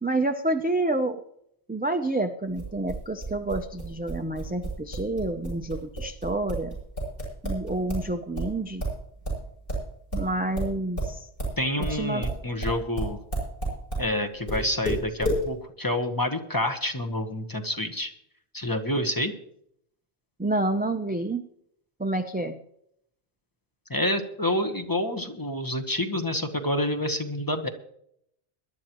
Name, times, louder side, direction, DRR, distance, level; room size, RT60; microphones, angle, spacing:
voice 1, 0.0-1.2 1.7-6.8 7.4-8.8 10.1-11.3 11.8-12.3 20.4-21.4 22.0-22.6, right 2 dB, 10° right, 7 dB, 0.4 m, -28 dB
sound 1, 2.5-8.1 8.3-14.1 14.5-15.4, right 1 dB, 55° left, 7.6 m, -31 dB
voice 2, 11.6-13.2 14.0-18.1 18.5-19.3 23.9-27.7, left 1 dB, 20° left, 5 dB, 1.1 m, -28 dB
21.5 x 11.5 x 3.0 m, 0.71 s
omnidirectional pair, 1.1 m